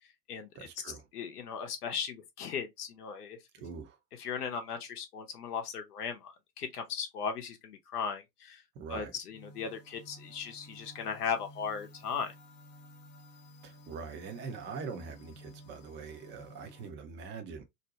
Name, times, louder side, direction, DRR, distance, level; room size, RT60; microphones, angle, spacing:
voice 1, 0.5-1.1 3.5-4.0 8.7-9.1 13.6-17.6, right 5 dB, 25° right, 0.5 m, -43 dB
voice 2, 1.1-3.4 4.2-8.6 8.9-12.3, left 6 dB, 70° left, 0.7 m, -37 dB
sound 1, 9.3-16.9, equal, 25° left, 0.5 m, -54 dB
2.6 x 2.1 x 2.7 m
figure-of-eight pair, 90°, 48 cm